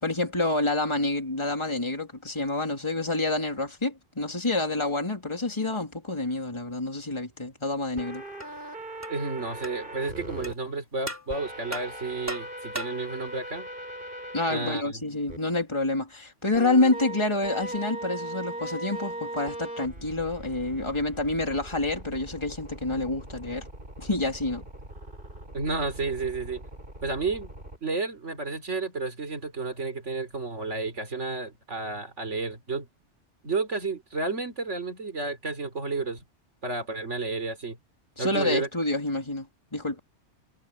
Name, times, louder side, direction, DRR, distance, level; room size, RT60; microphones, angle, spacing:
voice 1, 0.0-8.2 14.3-23.7 24.0-24.6 38.2-40.0, left 2 dB, 25° left, 3.2 m, -28 dB
sound 1, 8.0-10.5 11.3-14.7 15.3-15.4 16.5-27.8, right 1 dB, 45° right, 7.9 m, -39 dB
sound 2, 8.4-8.5 9.0-9.2 9.6-9.8 10.4-10.6 11.1-11.3 11.7-13.1, right 1 dB, 15° right, 3.8 m, -37 dB
voice 2, 9.1-13.7 14.5-15.0 25.5-26.6 27.0-27.5 27.8-32.9 33.4-36.2 36.6-37.8 38.2-38.7, right 3 dB, 80° right, 4.0 m, -31 dB
omnidirectional pair, 1.2 m